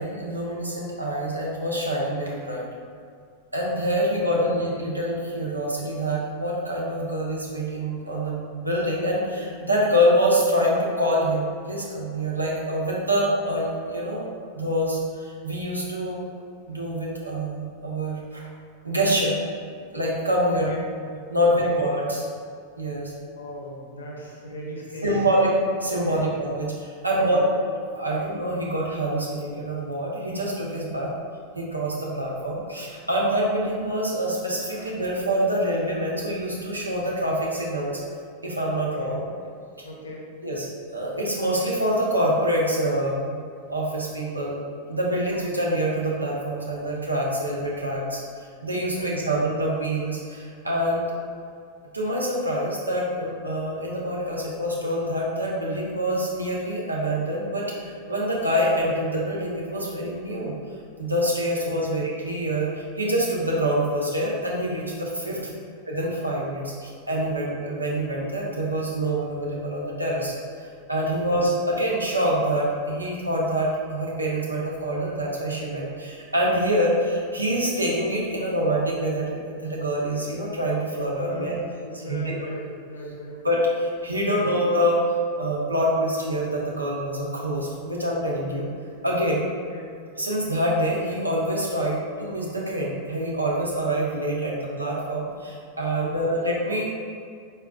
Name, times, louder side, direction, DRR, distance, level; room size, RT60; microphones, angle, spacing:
voice 1, 0.0-2.7 3.5-14.2 14.5-16.2 16.7-18.4 18.8-19.4 19.9-20.7 21.3-22.2 22.8-23.1 25.0-25.5 25.8-27.4 27.9-31.1 31.6-38.0 38.4-39.2 40.4-43.4 43.7-44.6 44.9-48.2 48.6-51.1 51.9-60.5 61.0-65.4 65.9-70.3 70.6-81.6 81.8-82.3 83.4-85.0 85.4-88.7 89.0-89.4 90.2-96.8, equal, 85° right, -4 dB, 0.9 m, -26 dB
voice 2, 4.0-4.5 20.5-20.9 21.4-21.8 22.1-22.3 23.2-25.3 26.0-26.3 27.1-27.6 38.7-39.2 39.8-40.2 48.9-49.4 61.5-62.0 65.2-65.5 71.0-71.4 81.2-83.4 84.2-84.5 89.7-89.9 96.0-96.3, equal, 70° left, -3 dB, 0.9 m, -39 dB
4.7 x 4.5 x 2.3 m, 2.2 s
figure-of-eight pair, 90°, 0 cm